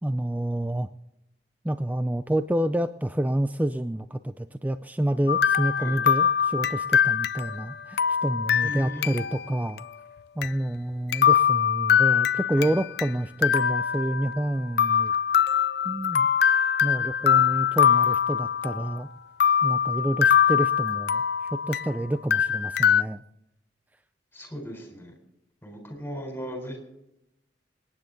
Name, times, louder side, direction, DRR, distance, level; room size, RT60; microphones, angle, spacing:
voice 1, 0.0-0.9 1.6-9.8 10.4-15.1 15.8-16.3 16.8-19.1 19.6-21.2 21.5-23.2, right 1 dB, 10° right, 11 dB, 0.4 m, -28 dB
sound 1, 5.3-9.5 9.8-9.9 10.4-10.5 11.1-13.1 13.4-14.5 14.8-19.0 19.4-22.0 22.3-23.0, left 8 dB, 65° left, 0.5 m, -23 dB
voice 2, 8.6-9.1 12.6-12.8 24.3-25.1 25.6-26.8, equal, 10° left, 3 dB, 3.9 m, -37 dB
26.5 x 9.9 x 3.9 m, 0.87 s
head